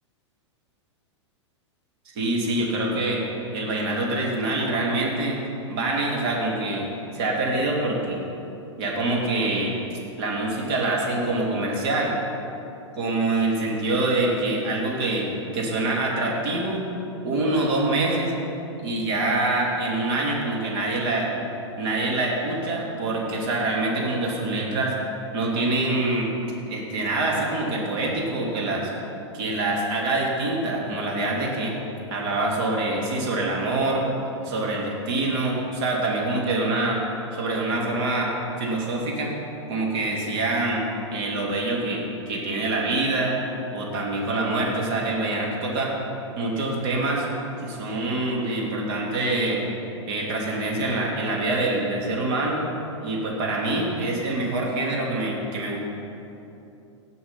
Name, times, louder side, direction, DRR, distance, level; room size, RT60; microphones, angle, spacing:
voice 1, 2.1-3.2 3.5-5.4 5.7-6.9 7.1-8.2 8.8-9.8 10.2-12.1 13.0-15.3 15.5-16.9 17.2-18.3 18.8-21.3 21.8-24.9 25.3-26.3 26.7-28.9 29.3-31.7 32.1-34.0 34.4-37.0 37.3-38.3 38.6-39.3 39.7-40.8 41.1-43.4 43.7-45.9 46.4-47.2 47.6-49.6 50.1-52.6 53.0-55.8, right 2 dB, 55° right, -2 dB, 2.8 m, -25 dB
18.0 x 6.1 x 5.7 m, 2.8 s
hypercardioid pair, 115°, 16 cm